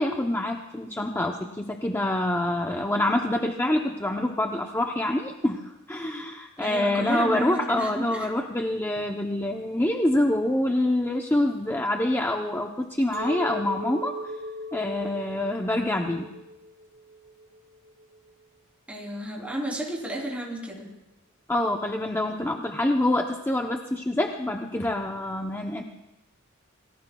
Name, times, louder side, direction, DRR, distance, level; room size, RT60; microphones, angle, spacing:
voice 1, 0.0-14.2 14.7-16.3 21.5-25.8, left 1 dB, 10° left, 2 dB, 0.7 m, -26 dB
voice 2, 6.6-8.3 18.9-21.0, right 1 dB, 5° right, -2 dB, 3.3 m, -32 dB
Chink clink, 13.1-18.3, equal, 50° right, 7.0 m, -38 dB
28.0 x 19.0 x 2.3 m, 0.98 s
head